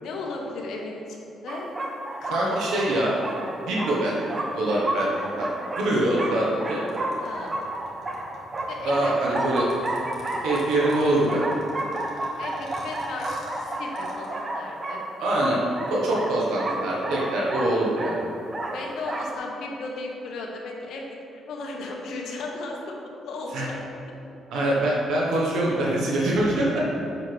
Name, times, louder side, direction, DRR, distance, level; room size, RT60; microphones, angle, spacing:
voice 1, 0.0-1.7 2.2-2.6 7.2-7.5 8.7-9.4 12.4-13.3 13.8-15.0 18.7-21.1 21.3-23.8 26.6-26.8, left 3 dB, 75° left, 0 dB, 1.1 m, -35 dB
sound 1, 1.5-19.3, right 1 dB, 35° right, 0.8 m, -32 dB
voice 2, 2.3-3.1 3.7-5.5 5.7-6.8 8.8-9.7 10.4-11.5 15.2-15.6 15.9-18.2 23.5-23.7 24.5-26.8, right 1 dB, 80° right, -4 dB, 1.3 m, -24 dB
sound 2, 6.9-14.3, left 2 dB, 60° left, 1.7 m, -45 dB
8.1 x 6.5 x 3.4 m, 2.8 s
cardioid pair, 90°, 0 cm